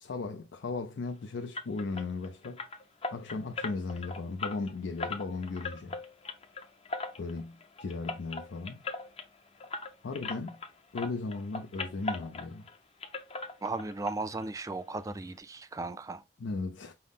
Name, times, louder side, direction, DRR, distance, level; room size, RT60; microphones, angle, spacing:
voice 1, 0.0-2.6 3.1-6.0 7.2-8.8 10.0-10.6 10.9-12.7 16.4-16.9, left 3 dB, 75° left, 0.5 m, -36 dB
sound 1, 1.5-10.7 11.0-12.8 13.0-14.1 14.4-14.5 14.9-15.0 15.4-15.5, left 3 dB, 35° left, 0.6 m, -39 dB
voice 2, 13.6-16.2, right 3 dB, 20° right, 0.3 m, -36 dB
5.6 x 2.1 x 3.5 m
head